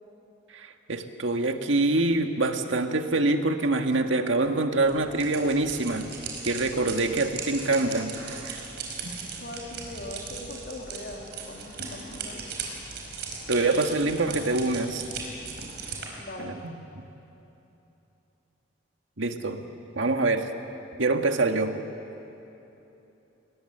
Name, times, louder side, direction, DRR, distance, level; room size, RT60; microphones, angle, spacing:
voice 1, 0.5-6.1 6.4-8.6 13.5-15.0 16.4-16.7 19.2-19.6 19.9-20.5 21.0-21.8, right 2 dB, 85° right, 5 dB, 1.7 m, -25 dB
sound 1, 4.8-16.1, right 4 dB, 55° right, 4.8 m, -38 dB
voice 2, 9.4-12.5 16.2-16.5, left 1 dB, 55° left, 0 dB, 3.0 m, -40 dB
29.5 x 21.0 x 8.0 m, 3.0 s
head